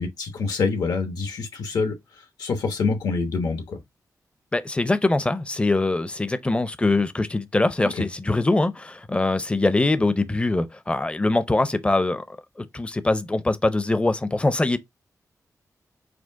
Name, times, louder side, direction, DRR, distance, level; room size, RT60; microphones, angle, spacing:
voice 1, 0.0-3.8 7.8-8.0, left 4 dB, 85° left, 1.2 m, -26 dB
voice 2, 4.5-12.2 12.6-14.8, left 2 dB, 15° left, 0.5 m, -23 dB
5.0 x 2.0 x 3.5 m
wide cardioid pair, 105°, 6 cm